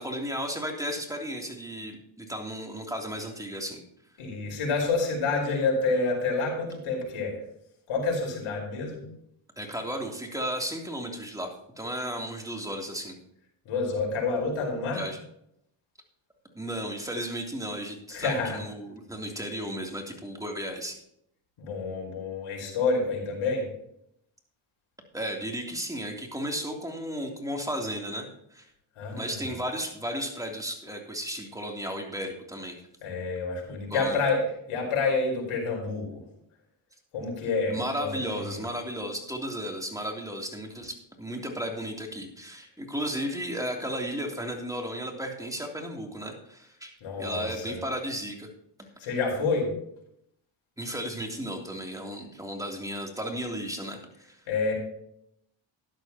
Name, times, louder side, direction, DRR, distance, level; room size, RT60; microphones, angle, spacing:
voice 1, 0.0-3.8 9.6-13.1 14.9-15.2 16.5-21.0 25.1-28.7 29.1-32.8 33.9-34.2 37.7-48.5 50.8-54.4, equal, 5° right, 1 dB, 3.2 m, -34 dB
voice 2, 4.2-7.4 7.9-9.0 13.6-15.1 18.1-18.6 21.6-23.7 28.9-29.6 33.0-36.3 37.1-38.7 47.0-47.8 49.0-49.7 54.5-54.7, left 3 dB, 80° left, 0 dB, 4.9 m, -28 dB
13.0 x 11.0 x 3.0 m, 0.73 s
cardioid pair, 80°, 49 cm